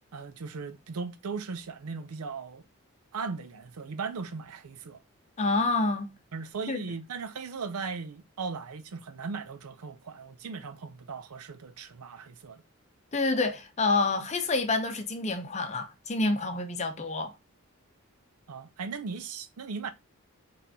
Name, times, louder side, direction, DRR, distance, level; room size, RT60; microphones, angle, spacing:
voice 1, 0.1-2.6 3.1-5.0 6.3-12.6 18.5-19.9, right 5 dB, 85° right, 0.5 m, -38 dB
voice 2, 5.4-6.1 6.7-6.8 13.1-17.3, left 3 dB, 30° left, 0.6 m, -28 dB
4.1 x 3.2 x 2.7 m
head